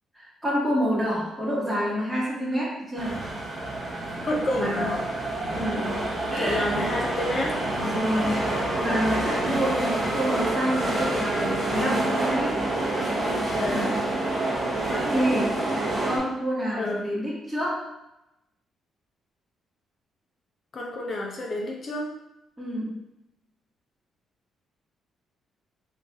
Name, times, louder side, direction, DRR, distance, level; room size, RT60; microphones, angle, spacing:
voice 1, 0.1-3.2 4.5-4.9 5.5-6.0 6.3-6.8 7.8-12.6 13.5-14.0 14.3-15.5 16.0-17.9 22.6-23.0, equal, 5° right, -7 dB, 1.1 m, -28 dB
sound 1, 3.0-16.2, right 2 dB, 35° right, 1.0 m, -27 dB
voice 2, 4.2-5.0 6.3-7.5 13.6-13.9 16.7-17.0 20.7-22.1, left 1 dB, 45° left, 0 dB, 0.6 m, -29 dB
3.2 x 2.7 x 3.4 m, 0.88 s
cardioid pair, 90°, 0 cm